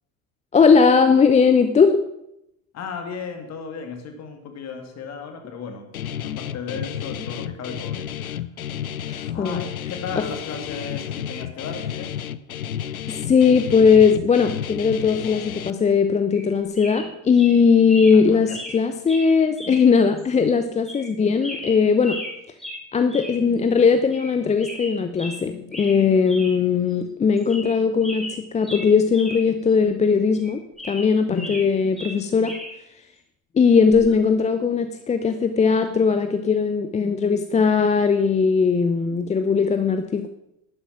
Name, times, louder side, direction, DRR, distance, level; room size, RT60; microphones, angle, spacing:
voice 1, 0.5-2.0 9.1-9.7 10.2-10.3 13.1-22.2 22.9-32.5 33.5-40.3, left 5 dB, 15° left, 9 dB, 0.7 m, -19 dB
voice 2, 2.7-5.9 6.2-8.4 9.3-12.2 18.1-18.6 31.3-31.5, left 5 dB, 40° left, 5 dB, 2.5 m, -35 dB
Guitar, 5.9-15.7, left 9 dB, 80° left, 0.6 m, -32 dB
sound 1, 16.3-16.5 16.8-17.1 17.4-17.5 17.9-18.2 18.5-18.8 19.1-19.3 19.6-19.8 20.2-20.3 20.8-21.1 21.4-22.3 22.6-22.8 23.1-23.4 23.7-23.8 24.1-24.3 24.6-25.4 25.7-26.0 26.3-26.5 26.9-27.0 27.4-27.8 28.0-29.4 29.7-29.8 30.3-31.7 32.0-32.7 33.9-34.1, left 1 dB, ahead, 5.4 m, -36 dB
11.5 x 10.0 x 5.9 m, 0.81 s
figure-of-eight pair, 70°, 42 cm